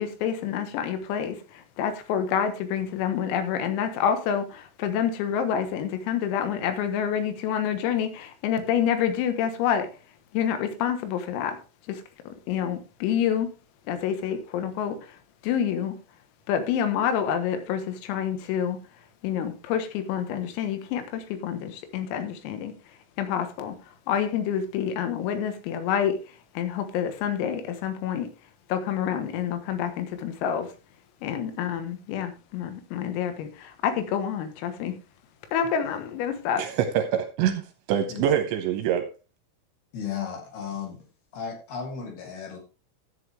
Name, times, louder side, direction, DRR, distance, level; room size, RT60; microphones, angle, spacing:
voice 1, 0.0-9.9 10.3-11.6 11.9-13.5 13.9-15.2 15.4-16.0 16.5-18.8 19.2-22.7 23.2-23.8 24.1-26.2 26.6-28.3 28.7-30.7 31.2-34.9 35.5-36.6, left 8 dB, 85° left, 4.1 m, -28 dB
voice 2, 36.6-39.1, right 9 dB, 80° right, 2.8 m, -25 dB
voice 3, 39.9-41.1 41.3-42.6, left 7 dB, 55° left, 3.6 m, -35 dB
13.0 x 8.2 x 3.4 m
omnidirectional pair, 5.9 m